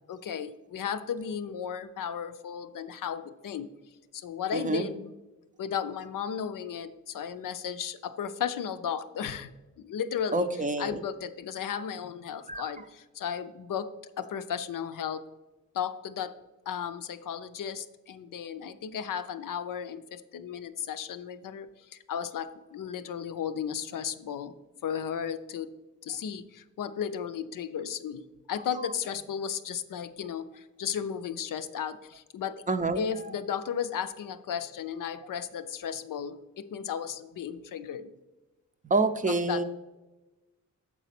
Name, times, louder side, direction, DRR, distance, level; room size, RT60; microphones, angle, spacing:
voice 1, 0.1-3.7 4.1-5.1 5.6-10.5 10.8-15.3 15.7-16.3 16.7-24.5 24.8-25.7 26.0-32.6 33.0-38.1 39.3-39.6, left 8 dB, 85° left, 10 dB, 0.5 m, -35 dB
voice 2, 4.5-4.9 10.3-11.0 12.5-12.7 32.7-33.0 38.8-39.6, right 3 dB, 25° right, 9 dB, 0.5 m, -27 dB
7.2 x 4.1 x 5.8 m, 1.1 s
wide cardioid pair, 105°, 32 cm